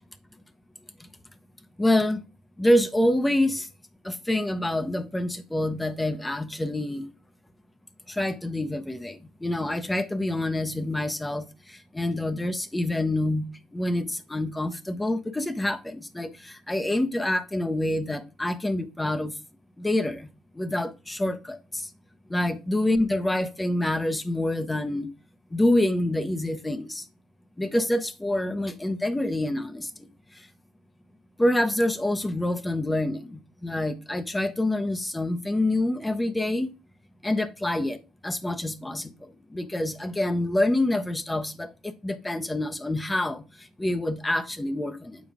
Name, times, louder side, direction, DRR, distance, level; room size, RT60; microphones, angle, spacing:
voice 1, 1.8-2.2 2.6-3.7 4.0-7.0 8.1-19.3 19.8-20.3 20.6-21.9 22.3-25.1 25.5-27.0 27.6-29.9 31.4-36.7 37.2-38.0 38.2-39.1 39.5-43.4 43.8-45.2, left 1 dB, 10° left, 0.8 m, -26 dB
7.2 x 4.6 x 3.6 m
supercardioid pair, 75°, 0 cm